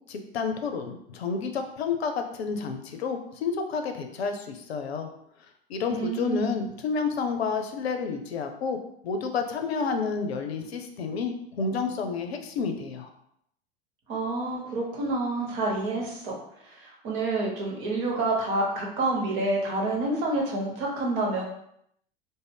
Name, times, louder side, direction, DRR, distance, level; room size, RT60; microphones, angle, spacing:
voice 1, 0.1-5.1 5.7-13.1, left 5 dB, 80° left, 5 dB, 0.5 m, -30 dB
voice 2, 5.9-6.5 14.1-16.4 16.6-21.4, right 2 dB, 55° right, -2 dB, 1.0 m, -28 dB
2.4 x 2.0 x 3.4 m, 0.73 s
figure-of-eight pair, 80°, 31 cm